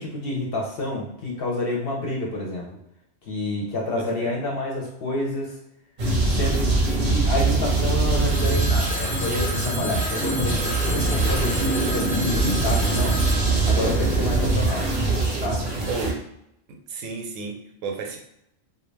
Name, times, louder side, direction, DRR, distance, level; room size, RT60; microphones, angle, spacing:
voice 1, 0.0-2.7 3.2-5.6 6.2-13.2 13.7-14.9 15.4-15.6, left 2 dB, 60° left, -2 dB, 0.7 m, -29 dB
voice 2, 4.0-4.3 15.9-16.2 16.7-18.2, right 4 dB, 80° right, 3 dB, 0.9 m, -33 dB
sound 1, 6.0-16.1, right 2 dB, 40° right, 0.6 m, -23 dB
Telephone, 8.2-15.1, equal, 30° left, 0.5 m, -33 dB
2.3 x 2.2 x 3.2 m, 0.77 s
omnidirectional pair, 1.3 m